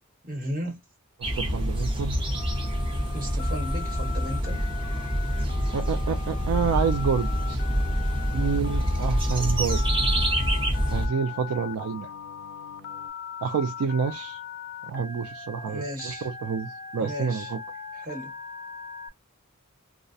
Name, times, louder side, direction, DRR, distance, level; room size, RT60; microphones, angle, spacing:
voice 1, 0.2-0.8 3.1-4.7 15.6-16.3 17.0-17.5 17.9-18.3, equal, 40° right, 1.0 m, -35 dB
sound 1, 1.2-11.1, equal, 25° right, 0.5 m, -26 dB
voice 2, 1.2-2.2 5.7-7.6 8.3-9.8 10.9-12.1 13.4-14.4 14.9-17.6, right 6 dB, 85° right, 0.3 m, -28 dB
Telephone, 2.3-19.1, left 7 dB, 45° left, 0.3 m, -40 dB
sound 2, 6.6-13.1, left 2 dB, 65° right, 0.7 m, -51 dB
2.3 x 2.1 x 2.6 m
head